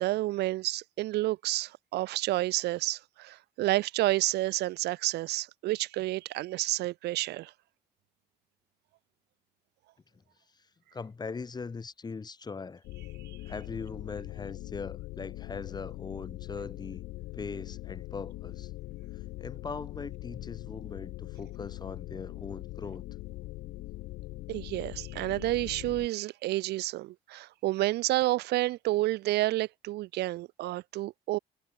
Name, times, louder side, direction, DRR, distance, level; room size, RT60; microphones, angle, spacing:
voice 1, 0.0-7.5 24.5-31.4, right 17 dB, 80° right, 1.7 m, -30 dB
voice 2, 10.9-12.8 13.5-17.0 17.3-18.7 19.4-23.0, left 4 dB, 25° left, 1.8 m, -40 dB
sound 1, 12.8-26.1, left 18 dB, 80° left, 1.3 m, -42 dB
cardioid pair, 110°, 17 cm